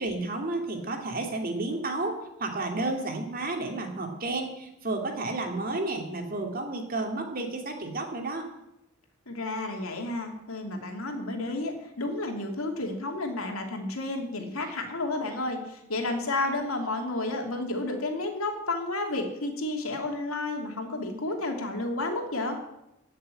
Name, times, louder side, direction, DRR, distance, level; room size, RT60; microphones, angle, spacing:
voice 1, 0.0-8.5 14.4-14.5, right 2 dB, 45° right, 3 dB, 2.5 m, -31 dB
voice 2, 9.3-22.6, left 2 dB, 80° left, 3 dB, 2.8 m, -31 dB
15.5 x 6.8 x 9.9 m, 0.87 s
head